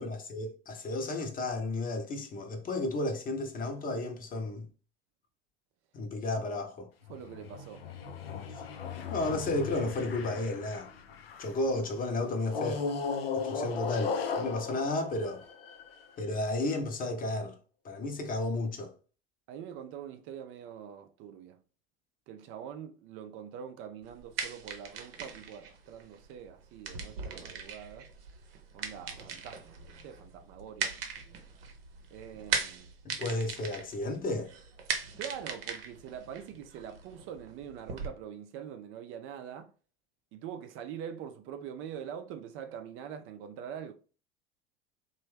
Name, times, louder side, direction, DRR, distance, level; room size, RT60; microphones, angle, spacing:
voice 1, 0.0-4.7 5.9-6.9 8.5-8.6 9.1-10.9 11.4-12.9 13.3-15.4 16.2-17.5 17.8-18.9 33.0-34.5, left 2 dB, 30° left, 0.7 m, -33 dB
sound 1, 7.0-11.7 12.5-16.1, left 5 dB, 85° left, 0.5 m, -37 dB
voice 2, 7.1-7.9 19.5-21.6 22.3-28.1 28.7-31.0 32.1-32.9 35.2-39.7 40.3-43.9, right 8 dB, 45° right, 0.4 m, -44 dB
sound 2, 24.0-38.1, right 6 dB, 75° right, 0.7 m, -39 dB
3.0 x 2.3 x 3.1 m
hypercardioid pair, 75°, 29 cm